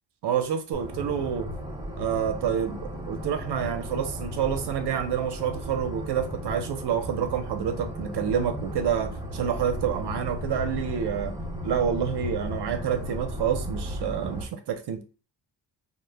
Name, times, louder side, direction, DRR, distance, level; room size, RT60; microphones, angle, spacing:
voice 1, 0.2-1.5 2.0-11.4 11.6-15.0, right 8 dB, 60° right, 0.5 m, -28 dB
sound 1, 0.7-14.4, equal, 10° right, 0.4 m, -35 dB
2.1 x 2.0 x 3.2 m
wide cardioid pair, 165°, 46 cm